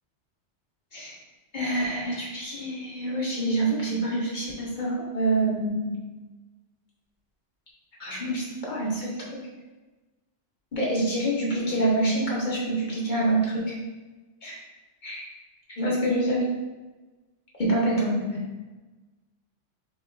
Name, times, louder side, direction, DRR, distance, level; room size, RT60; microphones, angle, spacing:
voice 1, 1.5-6.1 8.0-9.3 10.7-13.7 14.4-14.5 15.0-15.2 15.8-16.4 17.6-18.4, right 1 dB, 40° left, -6 dB, 1.5 m, -26 dB
7.5 x 2.9 x 2.4 m, 1.2 s
omnidirectional pair, 1.3 m